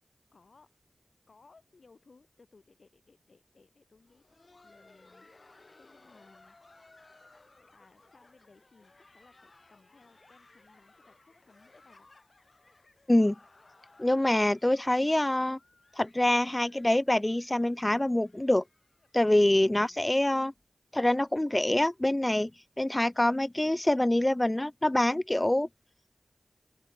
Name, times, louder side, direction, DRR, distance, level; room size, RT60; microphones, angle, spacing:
voice 1, 0.3-0.8 1.3-4.2 4.6-6.6 7.7-12.1 19.6-20.0, left 4 dB, 70° left, 5.3 m, -61 dB
Laughter, 4.0-19.6 19.9-20.0 20.5-20.7 21.2-21.4 22.5-22.6, left 2 dB, 50° left, 3.2 m, -60 dB
voice 2, 14.0-15.6 16.0-18.6 19.1-20.5 20.9-22.5 22.8-25.7, left 1 dB, 20° left, 0.5 m, -25 dB
open air
cardioid pair, 50°, 0 cm